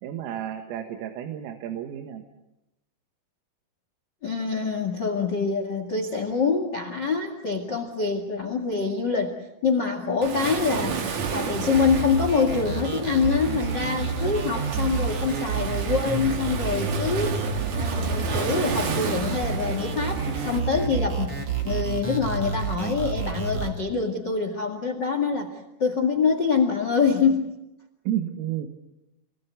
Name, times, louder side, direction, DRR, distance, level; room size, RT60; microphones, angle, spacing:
voice 1, 0.0-2.2 14.2-14.6 28.1-28.7, right 11 dB, 80° right, 6 dB, 4.1 m, -32 dB
voice 2, 4.2-9.4 9.6-11.0 11.3-17.3 17.7-25.5 25.8-27.5, left 5 dB, 70° left, 6 dB, 1.0 m, -25 dB
Waves surf, 10.2-20.6, right 5 dB, 50° right, 2.8 m, -32 dB
sound 1, 11.7-23.7, right 5 dB, 35° right, 3.2 m, -29 dB
29.0 x 20.0 x 8.3 m, 0.94 s
omnidirectional pair, 5.9 m